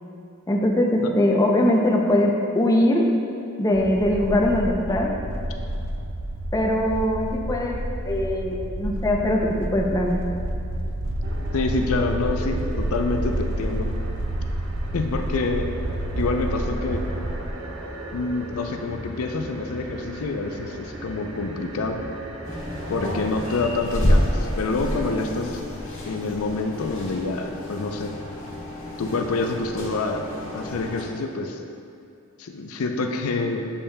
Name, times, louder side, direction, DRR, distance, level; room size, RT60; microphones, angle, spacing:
voice 1, 0.5-3.1 3.6-5.1 6.5-7.8 8.0-10.2, left 1 dB, 15° left, 0 dB, 0.5 m, -21 dB
sound 1, 3.7-17.5, right 1 dB, 60° right, 0.5 m, -29 dB
sound 2, 11.2-23.8, right 1 dB, 90° right, 0.8 m, -38 dB
voice 2, 11.5-13.9 14.9-15.7 16.2-17.0 18.1-22.0 22.9-25.6 26.0-28.1 29.0-30.2 30.5-31.6 32.4-33.7, left 3 dB, 85° left, 4 dB, 0.5 m, -27 dB
sound 3, 22.4-31.0, equal, 70° left, 1.5 m, -28 dB
8.2 x 5.5 x 2.2 m, 2.6 s
head